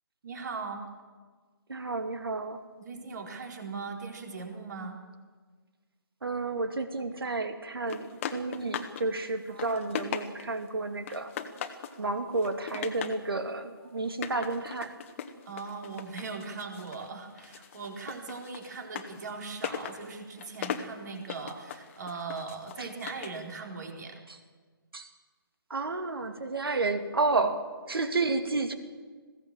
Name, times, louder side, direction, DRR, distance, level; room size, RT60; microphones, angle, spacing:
voice 1, 0.2-0.8 2.7-5.0 9.5-10.0 15.5-24.2, right 4 dB, 50° right, 2 dB, 4.0 m, -39 dB
voice 2, 1.7-2.6 6.2-11.3 12.0-15.0 22.8-22.9 24.9-25.1 25.7-27.6 27.9-28.7, right 3 dB, 75° right, 7 dB, 2.5 m, -31 dB
sound 1, 7.9-9.1 9.4-10.6 11.1-12.0 12.4-13.2 14.1-17.1 17.4-23.4, left 8 dB, 35° left, 1.4 m, -39 dB
21.0 x 16.5 x 7.6 m, 1.5 s
figure-of-eight pair, 145°, 12 cm